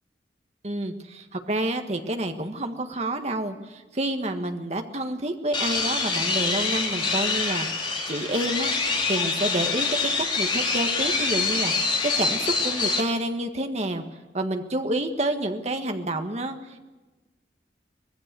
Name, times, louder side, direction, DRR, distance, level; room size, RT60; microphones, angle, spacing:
voice 1, 0.6-8.7 9.1-14.0 14.3-16.8, right 1 dB, 40° right, 5 dB, 1.7 m, -29 dB
sound 1, 5.5-13.0, left 4 dB, 30° left, 3.3 m, -25 dB
24.5 x 19.5 x 6.9 m, 1.2 s
head